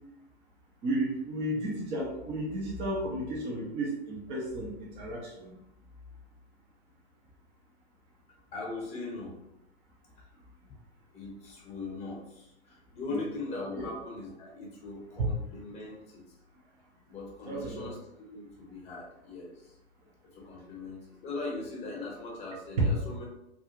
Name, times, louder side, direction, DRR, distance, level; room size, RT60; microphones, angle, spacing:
voice 1, 0.8-5.6 13.1-13.2 13.8-13.9 15.2-15.3 17.5-17.9 22.8-22.9, right 2 dB, 15° right, -4 dB, 0.4 m, -32 dB
voice 2, 8.5-9.3 11.1-16.2 17.1-19.7 20.3-23.2, left 3 dB, 20° left, -3 dB, 0.8 m, -40 dB
2.4 x 2.3 x 2.8 m, 0.87 s
hypercardioid pair, 120°, 34 cm